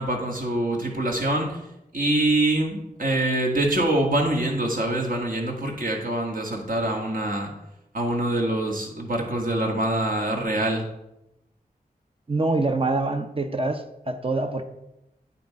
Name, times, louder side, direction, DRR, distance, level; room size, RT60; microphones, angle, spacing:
voice 1, 0.0-1.6 1.9-7.5 7.9-10.8, right 1 dB, 60° right, 0 dB, 1.7 m, -25 dB
voice 2, 12.3-14.7, right 2 dB, 35° right, 6 dB, 0.8 m, -25 dB
9.2 x 4.3 x 4.7 m, 0.89 s
cardioid pair, 55°, 16 cm